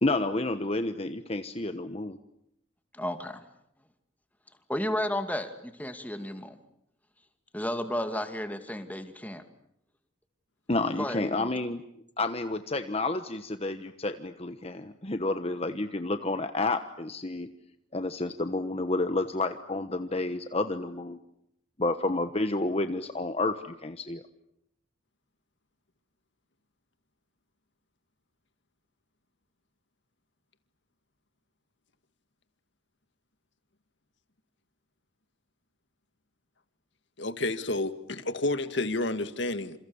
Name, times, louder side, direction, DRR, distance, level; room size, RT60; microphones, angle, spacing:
voice 1, 0.0-2.2 10.7-11.8 12.2-17.5 17.9-21.2 21.8-24.2, left 2 dB, 30° left, 1.2 m, -30 dB
voice 2, 2.9-3.4 4.7-6.6 7.5-9.4 11.0-11.5, left 1 dB, 10° left, 2.4 m, -33 dB
voice 3, 37.2-39.8, left 2 dB, 60° left, 2.1 m, -30 dB
29.0 x 28.0 x 7.1 m
head